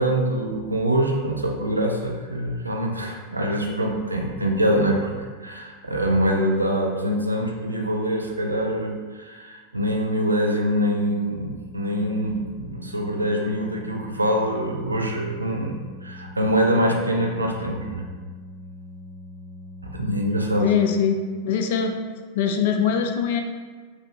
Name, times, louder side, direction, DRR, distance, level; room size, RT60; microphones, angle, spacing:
voice 1, 0.0-18.1 19.8-20.7, equal, 80° right, 1 dB, 0.5 m, -24 dB
Organ, 10.8-21.6, left 2 dB, 35° left, 1.2 m, -42 dB
voice 2, 20.6-21.9 22.3-23.4, left 7 dB, 50° left, 5 dB, 0.4 m, -22 dB
3.3 x 2.7 x 3.2 m, 1.5 s
figure-of-eight pair, 90°, 0 cm